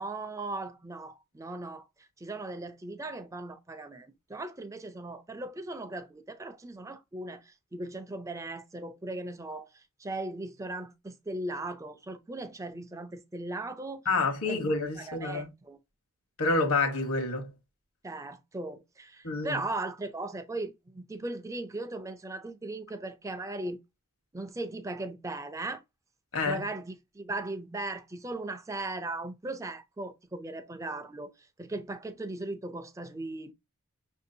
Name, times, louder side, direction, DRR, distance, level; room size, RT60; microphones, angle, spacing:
voice 1, 0.0-1.8 2.2-14.0 14.5-14.6 15.0-15.8 18.0-23.8 24.3-25.8 26.4-31.3 31.6-33.5, right 2 dB, 15° right, 0.4 m, -38 dB
voice 2, 14.1-15.5 16.4-17.5 19.2-19.6 26.3-26.7, left 3 dB, 70° left, 1.1 m, -28 dB
5.9 x 2.7 x 2.6 m
head